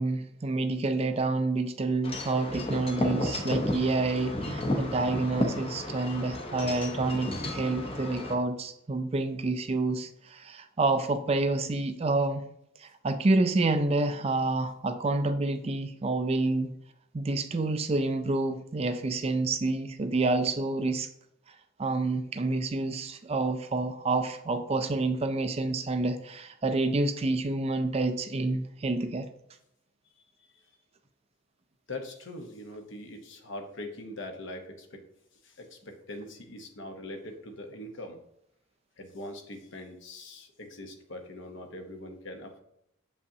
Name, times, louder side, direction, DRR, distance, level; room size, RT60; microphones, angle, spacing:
voice 1, 0.0-12.5 12.8-16.7 17.1-21.1 21.8-29.3, right 2 dB, 30° right, 9 dB, 0.4 m, -28 dB
Wind chime / Wind, 2.0-8.3, left 1 dB, 25° left, 0.7 m, -33 dB
voice 2, 30.2-30.7 31.9-35.0 35.4-38.2 39.0-42.6, left 1 dB, 60° left, 5 dB, 0.9 m, -42 dB
7.1 x 5.3 x 2.7 m, 0.78 s
head